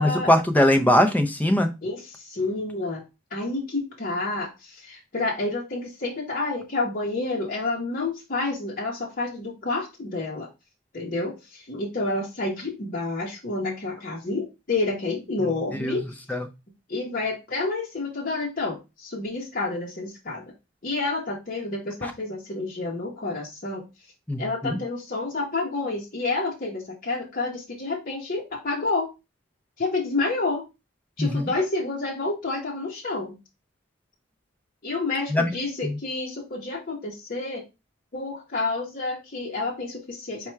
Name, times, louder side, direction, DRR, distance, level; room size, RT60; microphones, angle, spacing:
voice 1, 0.0-1.7 15.8-16.0 16.3-16.4 22.0-22.1 24.3-24.8 31.2-31.4 35.3-35.5 35.8-35.9, left 1 dB, 10° left, 6 dB, 0.5 m, -21 dB
voice 2, 1.8-3.0 3.3-10.5 10.9-16.1 16.9-20.5 20.8-23.8 24.4-29.1 29.8-30.7 31.2-33.4 34.8-37.6 38.1-40.5, left 3 dB, 45° left, -2 dB, 0.9 m, -29 dB
4.3 x 2.3 x 4.4 m, 0.25 s
head